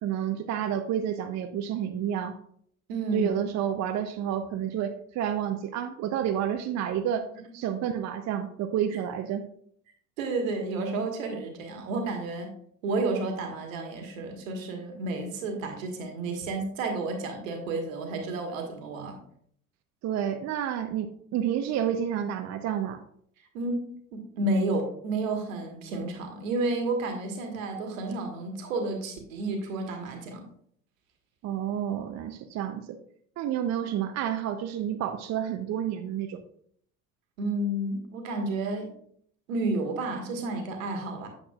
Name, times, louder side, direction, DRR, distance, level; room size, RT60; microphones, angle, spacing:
voice 1, 0.0-2.4 3.1-7.3 7.5-9.4 20.0-23.0 31.4-33.0 33.4-36.4, right 9 dB, 40° right, 7 dB, 0.6 m, -30 dB
voice 2, 2.9-3.3 10.2-12.5 12.8-19.2 23.5-23.8 24.1-30.5 37.4-39.0 39.5-41.3, right 2 dB, 75° right, 4 dB, 1.5 m, -31 dB
8.6 x 6.4 x 2.3 m, 0.65 s
hypercardioid pair, 60°, 41 cm